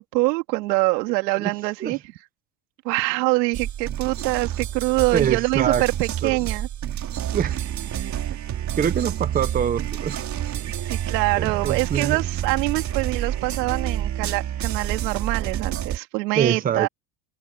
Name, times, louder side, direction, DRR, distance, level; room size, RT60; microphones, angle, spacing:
voice 1, 0.0-2.0 2.8-6.7 10.8-16.9, right 23 dB, 80° right, 2.4 m, -24 dB
sound 1, 3.5-16.0, right 10 dB, 35° right, 4.1 m, -28 dB
voice 2, 5.1-5.8 6.2-6.4 7.3-7.6 8.1-8.4 8.8-10.3 10.7-10.8 11.4-12.2 16.4-16.9, right 8 dB, 20° right, 0.9 m, -25 dB
supercardioid pair, 135°, 49 cm